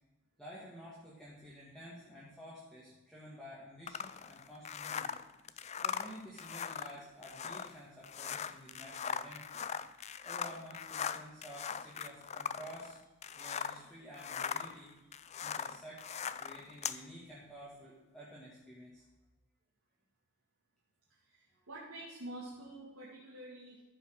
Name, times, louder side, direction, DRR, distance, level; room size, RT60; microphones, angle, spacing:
voice 1, 0.4-5.1 5.8-9.7 10.2-13.0 13.4-16.1 16.4-19.0 21.5-21.7, equal, ahead, -8 dB, 2.1 m, -51 dB
sound 1, 3.9-13.9 14.1-17.0, left 7 dB, 30° left, 0.3 m, -40 dB
voice 2, 21.1-23.8, right 1 dB, 70° right, -7 dB, 2.8 m, -48 dB
14.0 x 5.7 x 6.6 m, 1.1 s
head